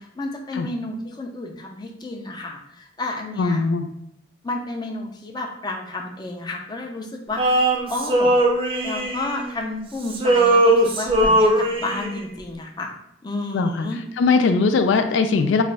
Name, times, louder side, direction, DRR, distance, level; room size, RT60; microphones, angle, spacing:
voice 1, 0.0-3.6 4.4-8.3 8.8-13.0 13.2-14.0, left 2 dB, 25° left, 1 dB, 0.5 m, -31 dB
voice 2, 3.4-3.9 13.5-13.9 14.2-15.6, left 4 dB, 85° left, 7 dB, 0.3 m, -19 dB
Male singing, 7.4-9.8 10.1-12.2, right 1 dB, 30° right, 0.5 m, -19 dB
3.1 x 2.3 x 3.9 m, 0.76 s
head